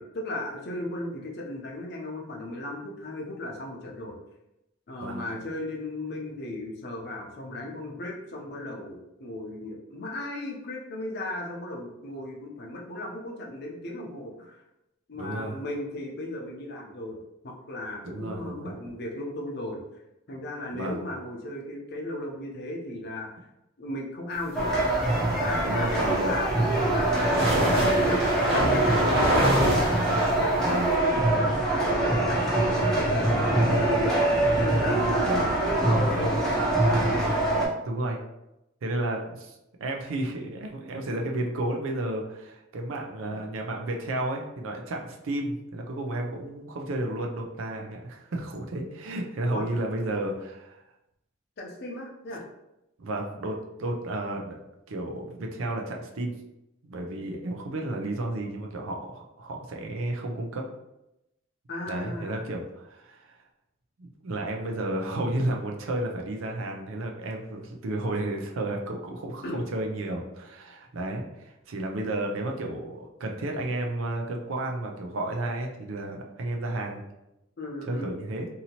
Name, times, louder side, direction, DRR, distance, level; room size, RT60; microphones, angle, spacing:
voice 1, 0.0-4.2 4.9-14.6 15.1-17.2 17.4-19.8 20.3-23.3 23.8-24.7 25.4-26.4 26.9-29.6 30.1-30.8 31.0-34.3 34.6-36.6 49.5-49.7 51.6-52.4 61.7-62.5 69.4-69.6 77.6-78.1, left 1 dB, 50° left, -1 dB, 0.6 m, -36 dB
voice 2, 15.2-15.5 18.0-18.7 20.7-21.0 25.6-26.3 27.7-28.2 30.6-30.9 35.2-35.5 37.8-38.2 38.8-39.5 39.8-50.8 53.0-54.6 54.9-56.3 56.8-60.7 61.9-63.4 64.0-77.0 77.9-78.5, right 1 dB, 70° right, 2 dB, 0.5 m, -32 dB
sound 1, 24.5-37.7, right 1 dB, 5° left, 0.6 m, -24 dB
sound 2, 25.8-30.9, equal, 50° right, 0.9 m, -26 dB
2.7 x 2.7 x 2.8 m, 0.91 s
head